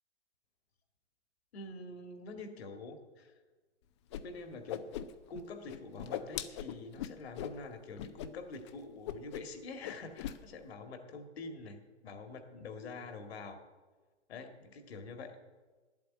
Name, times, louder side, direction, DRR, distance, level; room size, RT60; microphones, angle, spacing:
voice 1, 1.5-3.3 4.2-4.9 5.3-13.6 14.3-15.4, left 3 dB, 60° left, 7 dB, 2.0 m, -46 dB
Whoosh swoosh swish, 4.1-4.2 4.5-5.4 5.7-7.6 8.0-8.3 8.5-8.7 9.0-9.6 9.8-10.4, left 11 dB, 25° left, 0.5 m, -40 dB
10.5 x 8.5 x 8.5 m, 1.3 s
hypercardioid pair, 130°, 36 cm